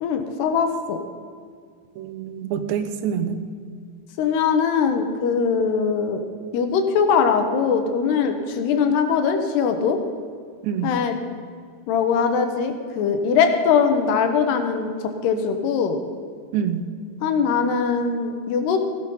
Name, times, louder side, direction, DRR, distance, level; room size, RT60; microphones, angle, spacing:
voice 1, 0.0-1.0 4.2-6.2 6.5-10.0 10.8-11.2 11.9-16.0 17.2-18.8, left 6 dB, 75° left, 6 dB, 2.9 m, -21 dB
voice 2, 2.0-3.4 10.6-10.9 16.5-16.9, right 8 dB, 80° right, 9 dB, 3.1 m, -26 dB
16.5 x 12.0 x 5.5 m, 2.2 s
omnidirectional pair, 5.2 m